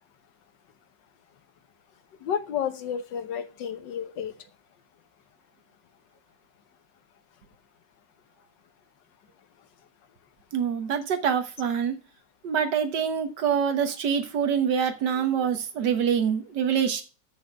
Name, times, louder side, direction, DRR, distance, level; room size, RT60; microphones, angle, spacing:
voice 1, 2.2-4.3, left 8 dB, 80° left, 1.6 m, -31 dB
voice 2, 10.5-12.0 12.4-17.0, right 7 dB, 70° right, 1.8 m, -25 dB
6.9 x 6.2 x 7.3 m
omnidirectional pair, 1.9 m